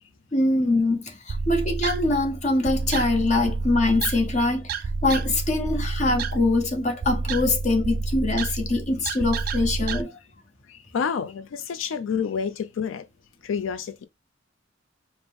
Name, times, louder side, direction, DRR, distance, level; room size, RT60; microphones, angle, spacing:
voice 1, 0.3-4.7 5.0-10.1, left 2 dB, 35° left, 0.9 m, -23 dB
sound 1, 1.3-10.0, right 4 dB, 50° right, 0.3 m, -29 dB
voice 2, 10.7-13.0 13.4-14.1, left 6 dB, 85° left, 0.4 m, -29 dB
5.0 x 2.1 x 3.4 m
head